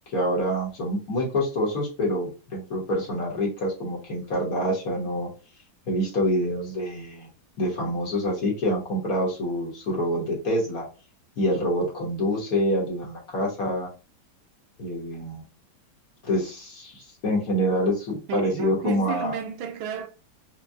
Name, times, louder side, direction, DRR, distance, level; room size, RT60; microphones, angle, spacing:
voice 1, 0.1-5.3 5.9-7.3 7.6-10.9 11.4-13.9 14.8-15.4 16.2-19.4, equal, 50° left, 1.3 m, -26 dB
voice 2, 18.3-20.1, right 7 dB, 90° right, 1.5 m, -31 dB
4.7 x 2.2 x 2.6 m
omnidirectional pair, 2.2 m